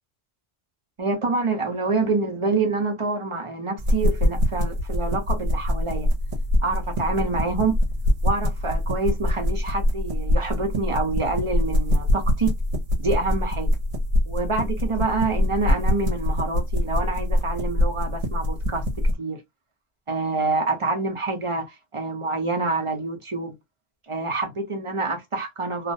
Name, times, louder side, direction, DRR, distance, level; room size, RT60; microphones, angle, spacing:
voice 1, 1.0-6.1 6.6-7.7 8.2-12.5 13.0-13.7 14.3-19.4 20.1-23.6 24.1-25.9, right 3 dB, 35° right, 0.5 m, -27 dB
sound 1, 3.8-19.1, left 1 dB, 75° right, 1.0 m, -24 dB
2.3 x 2.1 x 2.6 m
omnidirectional pair, 1.1 m